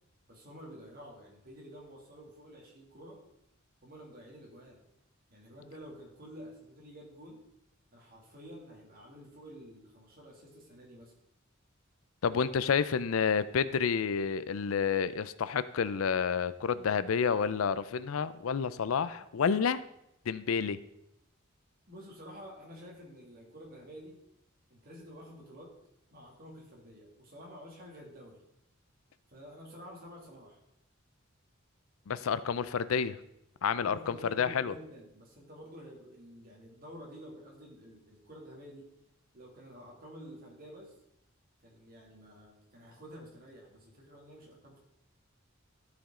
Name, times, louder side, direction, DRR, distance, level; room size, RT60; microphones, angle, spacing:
voice 1, 0.3-3.2 3.8-4.9 5.3-7.4 7.9-11.1 21.9-24.2 24.7-25.7 26.1-28.4 29.3-30.6 33.7-38.9 39.3-40.9 41.6-44.8, equal, 45° right, -2 dB, 2.4 m, -50 dB
voice 2, 12.2-19.8 20.3-20.8 32.1-33.2 33.6-34.7, left 6 dB, 85° left, 15 dB, 0.5 m, -29 dB
13.0 x 5.1 x 3.7 m, 0.81 s
head